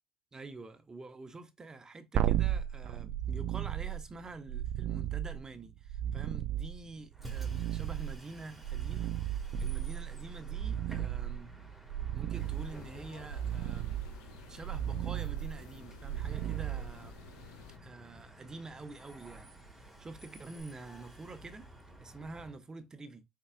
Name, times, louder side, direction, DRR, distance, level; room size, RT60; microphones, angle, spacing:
voice 1, 0.3-11.5 12.1-21.7 22.0-23.2, right 3 dB, 25° right, 0.9 m, -47 dB
sound 1, 2.1-17.4 20.6-20.7, right 11 dB, 65° right, 0.5 m, -35 dB
Bus, 7.1-22.6, right 1 dB, 5° right, 2.0 m, -52 dB
sound 2, 12.3-17.8, left 6 dB, 90° left, 0.7 m, -53 dB
4.5 x 4.1 x 2.5 m
supercardioid pair, 75°, 2 cm